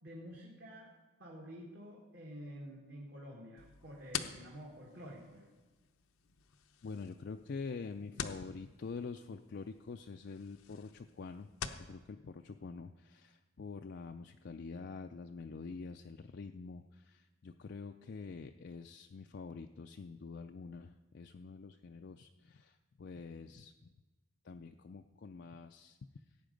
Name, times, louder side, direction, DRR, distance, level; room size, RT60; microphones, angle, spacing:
voice 1, 0.0-0.9 1.2-5.5, equal, 50° right, -2 dB, 1.7 m, -49 dB
sound 1, 3.6-11.9, left 7 dB, 85° left, 0.7 m, -47 dB
voice 2, 6.8-11.5 11.8-23.9 24.4-26.0, left 4 dB, 50° left, 5 dB, 0.4 m, -46 dB
16.5 x 8.5 x 5.2 m, 1.2 s
head